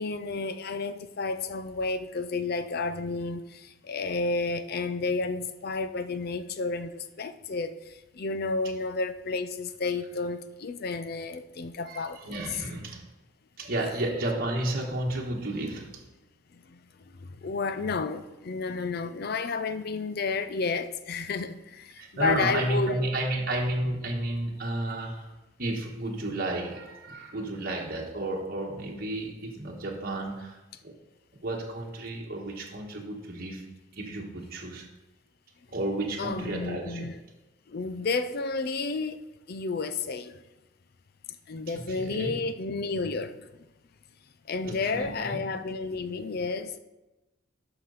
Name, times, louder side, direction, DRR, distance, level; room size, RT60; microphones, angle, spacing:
voice 1, 0.0-7.7 8.2-12.2 16.7-16.8 17.4-23.0 36.2-37.2 37.7-39.2 39.5-40.4 41.5-43.3 44.5-46.8, left 4 dB, 45° left, 0.5 m, -31 dB
voice 2, 11.9-13.0 13.6-16.1 22.0-25.3 25.6-30.9 31.4-33.6 33.9-34.9 35.7-37.1 41.7-42.4 44.6-45.4, right 1 dB, 45° right, 1.4 m, -32 dB
11.5 x 5.9 x 4.0 m
head